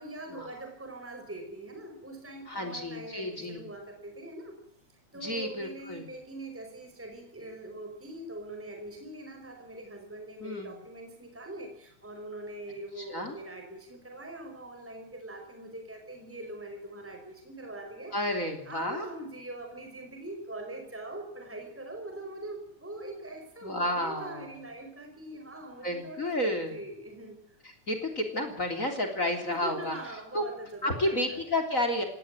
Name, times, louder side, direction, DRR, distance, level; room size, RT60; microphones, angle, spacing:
voice 1, 0.0-4.6 5.1-18.2 18.4-27.4 29.3-31.4, right 2 dB, 5° right, 3 dB, 4.7 m, -42 dB
voice 2, 2.5-3.7 5.2-6.1 10.4-10.7 13.0-13.4 18.1-19.1 23.6-24.5 25.8-26.8 27.6-30.0 30.3-30.4 30.8-32.0, left 1 dB, 25° left, 6 dB, 3.6 m, -31 dB
18.5 x 17.0 x 9.2 m, 0.73 s
omnidirectional pair, 3.3 m